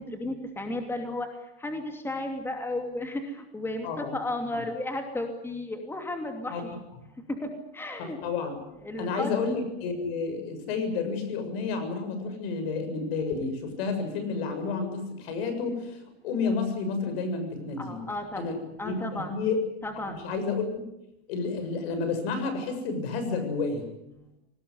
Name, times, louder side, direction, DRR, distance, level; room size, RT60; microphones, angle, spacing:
voice 1, 0.0-6.7 7.3-8.2 8.8-9.3 17.8-18.4 18.8-19.3 19.8-20.2, left 2 dB, 5° left, 4 dB, 2.8 m, -34 dB
voice 2, 3.8-4.1 4.5-4.6 6.5-6.6 8.2-8.6 9.0-18.0 18.4-18.6 18.8-19.6 20.1-20.7 21.3-23.8, left 4 dB, 70° left, 8 dB, 7.2 m, -30 dB
23.5 x 19.0 x 9.8 m, 0.89 s
supercardioid pair, 140°, 32 cm